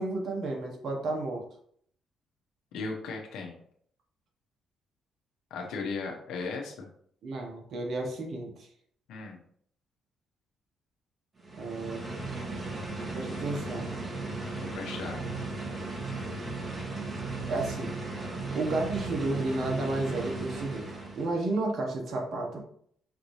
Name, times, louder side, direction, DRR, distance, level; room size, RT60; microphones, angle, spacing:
voice 1, 0.0-1.4 7.2-8.7 11.6-12.0 13.2-13.9 17.5-17.9 18.5-20.9 21.1-22.6, right 2 dB, 65° right, 1 dB, 1.1 m, -32 dB
voice 2, 2.7-3.5 5.5-6.9 9.1-9.4 14.7-15.3, left 4 dB, 90° left, 1 dB, 0.8 m, -36 dB
sound 1, 11.4-21.4, right 3 dB, 30° right, 1.3 m, -36 dB
5.8 x 2.7 x 3.1 m, 0.64 s
cardioid pair, 90°, 0 cm